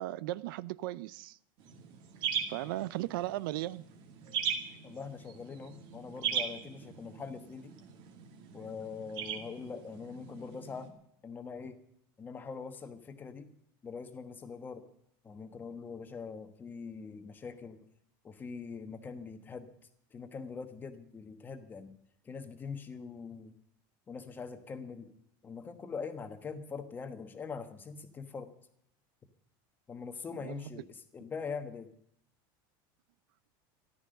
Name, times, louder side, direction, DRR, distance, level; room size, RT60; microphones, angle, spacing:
voice 1, 0.0-1.4 2.5-3.9 30.3-30.8, right 16 dB, 85° right, 0.5 m, -37 dB
sound 1, 1.6-10.9, right 7 dB, 45° right, 2.1 m, -39 dB
voice 2, 4.8-7.7 8.5-10.9 11.2-11.8 12.2-13.5 13.8-14.8 15.2-17.8 18.2-19.7 20.1-21.9 22.2-23.5 24.1-25.1 25.4-28.5 29.9-31.9, left 5 dB, 15° left, 1.2 m, -43 dB
14.0 x 12.0 x 6.6 m
supercardioid pair, 165°, 11 cm